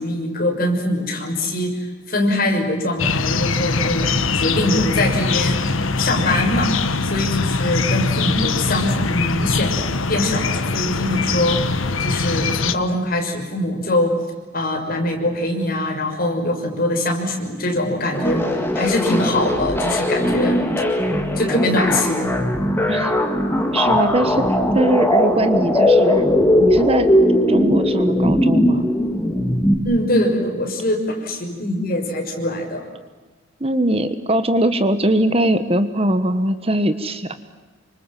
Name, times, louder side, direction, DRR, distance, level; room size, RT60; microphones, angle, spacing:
voice 1, 0.0-6.7 7.0-9.7 10.1-11.6 12.0-14.2 14.5-18.4 18.7-20.6 21.4-22.4 29.8-32.9, left 1 dB, 45° left, 2 dB, 6.2 m, -22 dB
sound 1, 3.0-12.7, left 4 dB, 80° left, 1.4 m, -22 dB
sound 2, 18.1-29.7, left 1 dB, 10° left, 2.9 m, -19 dB
voice 2, 23.7-26.3 26.6-27.1 27.5-28.9 33.6-37.3, right 1 dB, 30° right, 11 dB, 1.3 m, -21 dB
28.5 x 25.5 x 7.5 m, 1.3 s
head